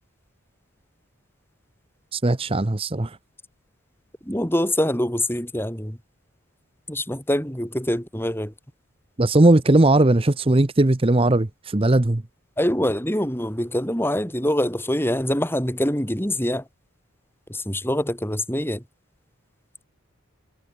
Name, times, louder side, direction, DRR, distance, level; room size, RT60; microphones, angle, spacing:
voice 1, 2.1-3.1 9.2-12.2, right 2 dB, 25° right, 0.8 m, -18 dB
voice 2, 4.2-6.0 6.9-8.5 12.6-16.6 17.5-18.8, left 1 dB, 10° left, 5.5 m, -24 dB
head